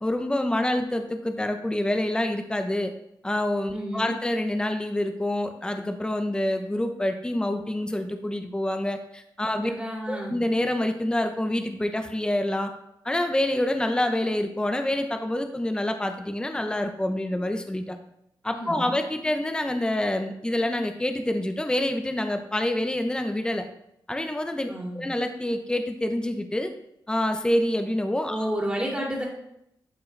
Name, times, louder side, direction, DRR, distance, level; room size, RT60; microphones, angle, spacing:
voice 1, 0.0-2.9 3.2-9.7 10.1-12.7 13.0-18.0 18.4-23.7 24.1-26.7 27.1-28.5, left 1 dB, 10° left, 6 dB, 0.7 m, -27 dB
voice 2, 3.7-4.1 9.5-10.4 18.5-18.9 24.7-25.1 28.3-29.2, right 1 dB, 15° right, -3 dB, 2.6 m, -31 dB
10.5 x 4.4 x 3.3 m, 0.80 s
cardioid pair, 75°, 8 cm